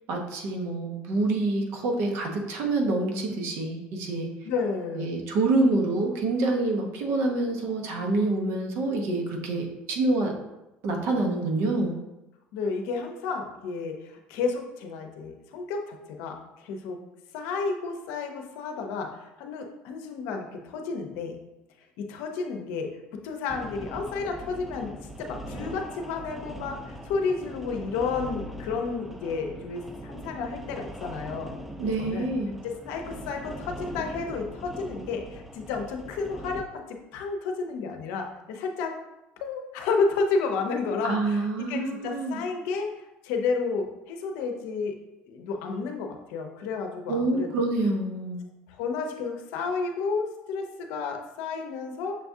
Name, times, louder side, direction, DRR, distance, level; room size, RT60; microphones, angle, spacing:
voice 1, 0.1-4.3 5.0-10.3 10.8-12.0 31.8-32.5 41.0-42.4 47.1-48.4, right 2 dB, 70° right, 2 dB, 0.8 m, -26 dB
voice 2, 4.4-5.2 12.5-17.0 17.3-21.4 22.0-22.9 23.2-31.6 32.0-32.3 32.6-38.9 39.4-42.9 43.2-45.0 45.3-47.7 48.7-52.2, left 4 dB, 80° left, 4 dB, 0.6 m, -31 dB
sound 1, 23.5-36.6, equal, 5° right, 0.4 m, -41 dB
6.4 x 2.3 x 2.7 m, 0.95 s
supercardioid pair, 95°, 4 cm